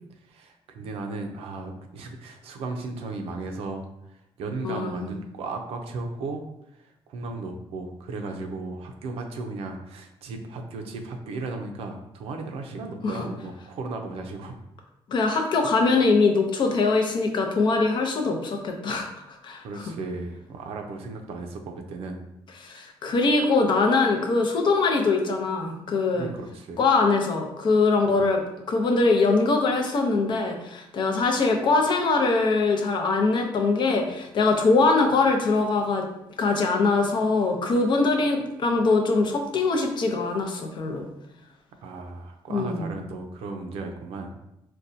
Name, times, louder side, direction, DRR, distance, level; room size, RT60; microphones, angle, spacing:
voice 1, 0.3-6.4 6.8-14.6 19.6-22.2 26.1-26.8 28.1-28.2 41.8-44.4, right 3 dB, 80° right, 4 dB, 0.5 m, -35 dB
voice 2, 4.6-5.1 13.0-13.2 15.1-19.1 19.4-19.8 22.6-26.3 26.8-28.4 28.7-36.0 36.4-41.0 42.5-42.9, left 3 dB, 50° left, 3 dB, 0.6 m, -22 dB
4.1 x 2.2 x 2.6 m, 0.84 s
cardioid pair, 120°, 10 cm